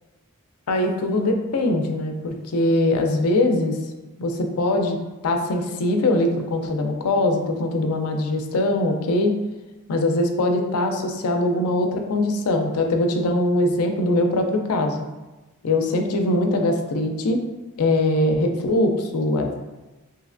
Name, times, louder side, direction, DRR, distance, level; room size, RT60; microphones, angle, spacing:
voice 1, 0.7-3.8 4.2-9.4 9.9-15.0 15.6-17.4 17.8-19.6, left 1 dB, 85° left, 4 dB, 0.4 m, -22 dB
3.1 x 2.8 x 2.5 m, 1.1 s
head